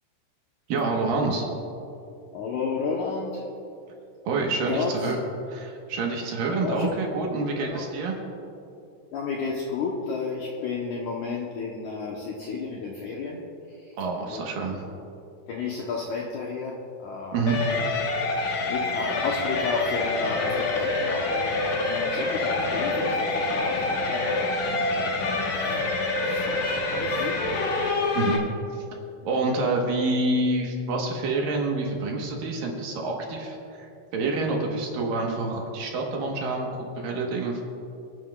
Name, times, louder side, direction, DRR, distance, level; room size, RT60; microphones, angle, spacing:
voice 1, 0.7-1.5 4.3-5.2 5.5-8.1 14.0-14.8 17.3-17.7 28.2-28.5 29.2-33.9 34.1-37.6, right 3 dB, 65° right, 0 dB, 2.7 m, -27 dB
voice 2, 2.3-3.5 4.6-5.2 6.6-7.1 7.6-7.9 9.1-14.0 14.3-15.0 15.5-17.4 18.7-24.7 25.0-25.3 25.6-27.6, left 4 dB, 75° left, -2 dB, 1.8 m, -32 dB
sound 1, 17.5-28.4, left 3 dB, 60° left, 2.3 m, -26 dB
29.5 x 9.9 x 2.3 m, 2.6 s
omnidirectional pair, 4.7 m